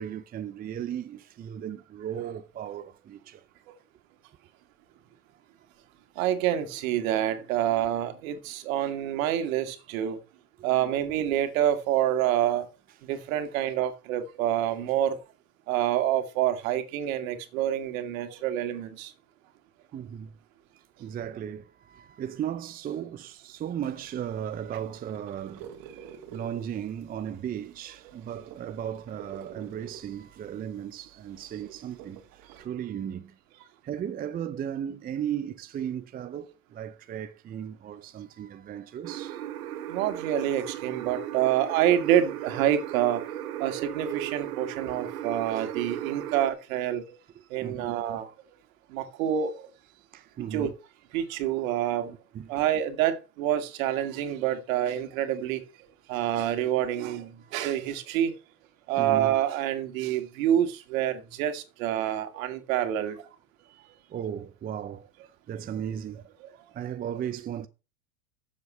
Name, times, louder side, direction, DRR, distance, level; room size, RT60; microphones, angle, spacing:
voice 1, 0.0-3.4 19.9-20.4 21.0-25.7 26.3-33.4 33.8-39.4 47.6-47.9 50.1-50.7 52.3-52.5 57.4-57.7 59.0-59.4 63.7-65.1 65.5-66.2 66.7-67.7, right 9 dB, 20° right, 0.6 m, -36 dB
voice 2, 6.2-10.2 10.6-12.7 13.0-15.2 15.7-19.1 39.9-47.2 47.5-48.3 48.9-49.7 50.5-50.7 51.1-52.2 52.5-55.6 56.1-58.4 58.9-63.3, right 11 dB, 65° right, 2.3 m, -27 dB
sound 1, 23.8-32.7, right 8 dB, 50° right, 2.4 m, -50 dB
sound 2, 39.0-46.5, right 12 dB, 80° right, 1.5 m, -36 dB
10.5 x 7.5 x 5.6 m
hypercardioid pair, 115°, 44 cm